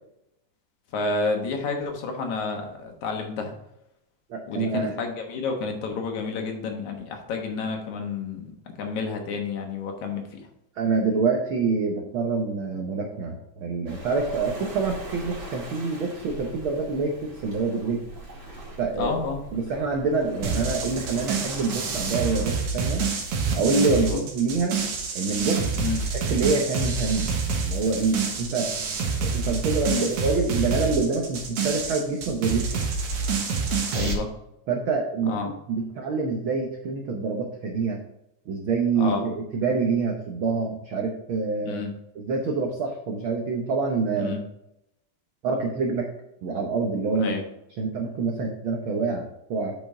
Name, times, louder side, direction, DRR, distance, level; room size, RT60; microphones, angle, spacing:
voice 1, 0.9-3.5 4.5-8.5 8.8-10.4 19.0-19.4 23.9-24.2 25.8-26.1 29.9-30.1 33.9-34.3 35.3-35.5 39.0-39.2 41.6-41.9 44.2-44.4 47.2-47.4, left 4 dB, 70° left, 3 dB, 2.6 m, -30 dB
voice 2, 4.3-4.9 10.7-18.0 18.8-19.2 19.5-23.0 23.5-24.8 25.1-25.8 26.1-28.7 29.3-32.8 33.9-34.1 34.7-38.0 38.5-41.8 42.1-44.3 45.4-46.1 46.4-47.4 47.8-49.7, right 4 dB, 90° right, 2 dB, 1.1 m, -26 dB
Waves surf, 13.9-22.5, right 1 dB, 30° right, 2.1 m, -41 dB
sound 1, 20.4-34.1, right 5 dB, 65° right, 2.4 m, -27 dB
8.6 x 5.2 x 3.7 m, 0.81 s
omnidirectional pair, 3.6 m